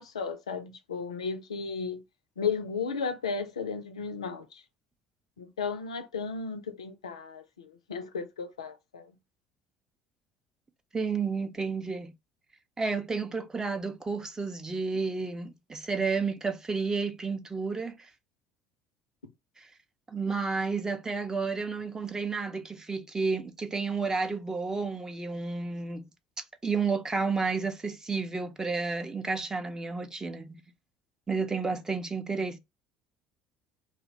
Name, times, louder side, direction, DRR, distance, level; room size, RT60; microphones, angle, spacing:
voice 1, 0.0-2.0 2.4-4.6 5.4-9.1, left 5 dB, 75° left, 0.3 m, -34 dB
voice 2, 10.9-12.1 12.8-18.1 19.6-19.7 20.1-26.1 26.6-30.6 31.3-32.6, right 4 dB, 20° right, 0.5 m, -31 dB
2.5 x 2.0 x 2.8 m
figure-of-eight pair, 55°, 3 cm